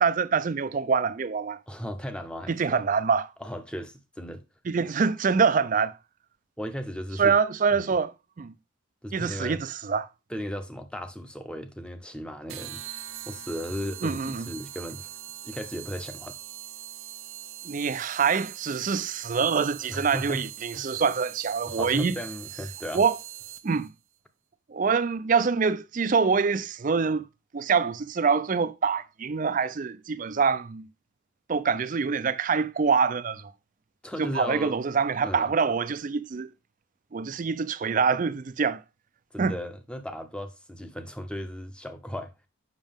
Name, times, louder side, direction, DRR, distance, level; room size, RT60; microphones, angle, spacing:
voice 1, 0.0-1.6 2.5-3.3 4.7-6.0 7.2-8.5 9.1-10.1 14.0-14.5 17.6-22.2 22.9-23.2 23.6-23.9 24.7-27.3 27.5-30.9 31.5-33.5 34.2-36.5 37.1-38.8 39.4-39.5, right 5 dB, 40° right, 0.4 m, -25 dB
voice 2, 1.7-2.8 3.4-4.4 6.6-7.4 7.7-7.9 9.0-9.6 10.3-12.8 13.3-15.1 15.4-16.4 19.9-20.5 20.7-21.0 21.7-23.0 34.0-34.8 35.2-35.5 39.3-42.3, equal, 5° left, 0.7 m, -36 dB
sound 1, 12.5-23.9, right 11 dB, 75° right, 0.6 m, -42 dB
7.2 x 6.0 x 3.5 m
head